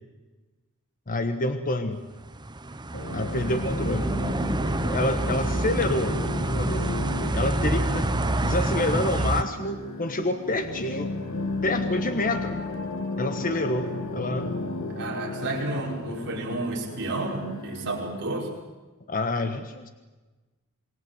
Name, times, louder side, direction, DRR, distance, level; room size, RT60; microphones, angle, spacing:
voice 1, 1.1-2.0 3.1-4.1 4.7-6.2 6.6-6.9 7.3-11.2 11.6-12.6 13.2-14.5 19.1-19.9, left 2 dB, 40° left, 8 dB, 1.4 m, -28 dB
sound 1, 2.2-9.4, right 1 dB, 20° right, 0.9 m, -27 dB
sound 2, 2.9-18.2, left 2 dB, 65° left, 2.5 m, -34 dB
voice 2, 15.0-18.5, right 2 dB, 55° right, -2 dB, 5.4 m, -31 dB
27.0 x 20.5 x 7.9 m, 1.2 s
head